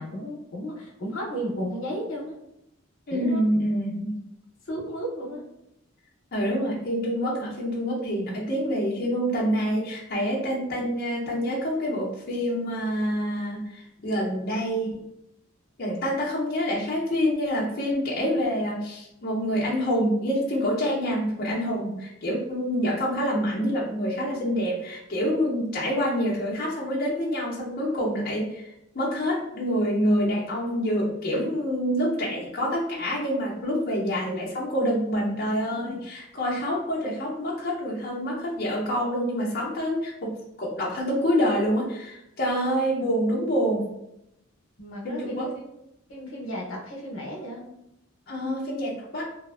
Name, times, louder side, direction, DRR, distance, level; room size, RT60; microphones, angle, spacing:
voice 1, 0.0-2.4 3.1-3.4 4.7-5.4 44.8-45.7 46.1-47.7, equal, 80° left, -2 dB, 0.8 m, -34 dB
voice 2, 3.1-4.2 6.3-15.0 15.8-43.9 45.0-45.5 48.3-49.3, equal, 50° left, -5 dB, 0.6 m, -27 dB
2.6 x 2.4 x 2.4 m, 0.82 s
head